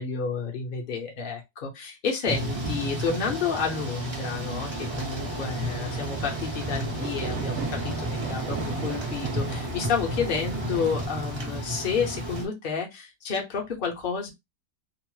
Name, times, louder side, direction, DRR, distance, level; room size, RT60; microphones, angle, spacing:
voice 1, 0.0-14.3, left 5 dB, 45° left, 0.8 m, -30 dB
Thunder / Rain, 2.3-12.4, right 1 dB, 30° right, 0.5 m, -32 dB
sound 1, 4.8-11.1, right 5 dB, 70° right, 1.2 m, -38 dB
2.9 x 2.1 x 3.0 m
omnidirectional pair, 1.8 m